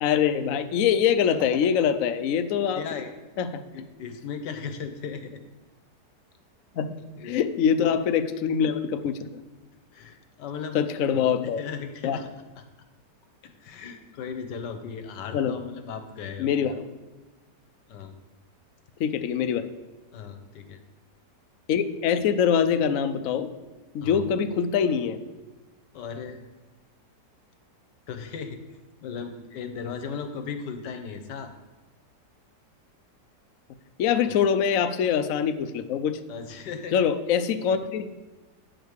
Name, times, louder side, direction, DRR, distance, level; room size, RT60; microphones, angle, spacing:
voice 1, 0.0-2.8 3.4-3.6 6.8-7.0 7.2-9.4 10.7-11.6 12.0-12.2 15.3-15.5 16.4-16.9 19.0-19.6 21.7-23.5 23.9-25.2 34.0-36.2 36.9-38.2, left 8 dB, 65° left, 10 dB, 0.9 m, -24 dB
voice 2, 2.8-3.1 3.7-5.4 7.2-7.4 7.8-8.0 9.9-10.8 11.1-12.3 12.6-12.7 13.4-16.8 17.9-18.1 20.1-20.8 24.0-24.3 25.9-26.4 28.1-28.6 29.0-31.5 34.3-34.4 36.3-37.0, left 6 dB, 80° left, 7 dB, 1.5 m, -37 dB
10.0 x 5.1 x 6.4 m, 1.2 s
omnidirectional pair, 1.8 m